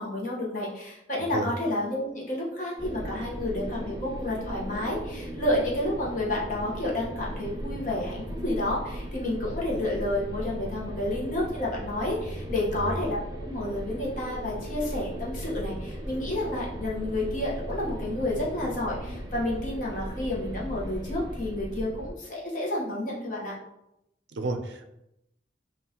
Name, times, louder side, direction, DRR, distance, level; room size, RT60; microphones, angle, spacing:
voice 1, 0.0-23.5, left 1 dB, 45° left, -5 dB, 1.1 m, -30 dB
voice 2, 1.2-1.5 12.7-13.0 24.3-24.9, right 2 dB, 70° right, 6 dB, 0.5 m, -32 dB
sound 1, 2.8-22.1, right 1 dB, 20° right, 0.5 m, -37 dB
5.3 x 2.5 x 2.9 m, 0.85 s
head